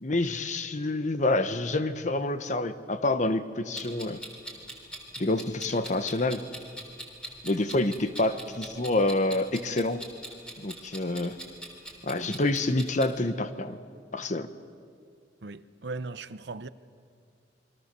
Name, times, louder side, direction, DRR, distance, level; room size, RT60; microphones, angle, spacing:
voice 1, 0.0-4.2 5.2-6.4 7.4-10.0 10.6-11.4 12.0-13.8 14.1-14.5, left 2 dB, 40° left, 1.0 m, -27 dB
Clock, 3.7-13.1, right 1 dB, 5° left, 3.8 m, -42 dB
voice 2, 15.4-16.7, right 3 dB, 65° right, 0.8 m, -38 dB
29.5 x 23.5 x 6.8 m
head